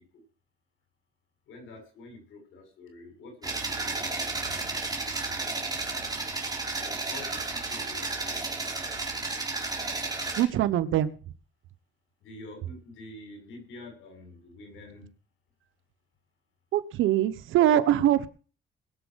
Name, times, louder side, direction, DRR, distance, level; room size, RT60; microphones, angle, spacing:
voice 1, 1.5-4.8 5.8-8.7 12.2-15.1, left 2 dB, 85° left, 5 dB, 7.0 m, -48 dB
sound 1, 3.4-10.4, right 3 dB, 20° right, 4.3 m, -32 dB
voice 2, 10.4-11.1 16.7-18.3, right 12 dB, 85° right, 13 dB, 1.2 m, -23 dB
21.0 x 7.4 x 6.3 m, 0.38 s
cardioid pair, 90°, 20 cm